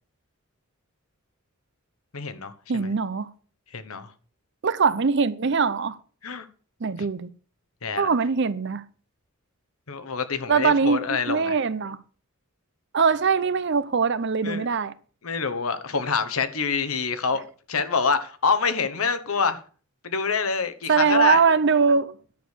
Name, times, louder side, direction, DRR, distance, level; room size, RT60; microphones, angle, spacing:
voice 1, 2.1-2.5 2.8-2.9 3.7-4.1 6.2-6.5 7.8-8.1 9.9-11.5 14.4-14.6 15.2-17.4 17.7-19.6 20.0-21.4, left 5 dB, 85° left, 1.1 m, -26 dB
voice 2, 2.7-3.3 4.6-6.0 6.8-7.3 8.0-8.8 10.5-12.0 12.9-14.9 20.9-22.2, right 5 dB, 55° right, 0.6 m, -22 dB
10.5 x 6.6 x 6.1 m
head